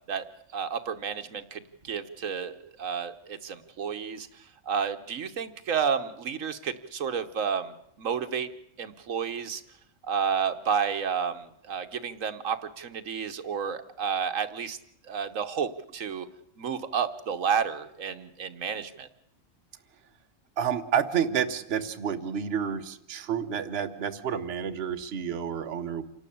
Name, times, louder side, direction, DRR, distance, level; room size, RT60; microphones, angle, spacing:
voice 1, 0.5-4.3 4.7-8.5 8.8-9.6 10.0-14.8 15.1-16.3 16.6-19.1, right 7 dB, 85° right, 8 dB, 1.5 m, -31 dB
voice 2, 20.6-26.0, right 8 dB, 55° right, 7 dB, 1.2 m, -29 dB
27.5 x 12.0 x 8.6 m, 0.72 s
omnidirectional pair, 1.3 m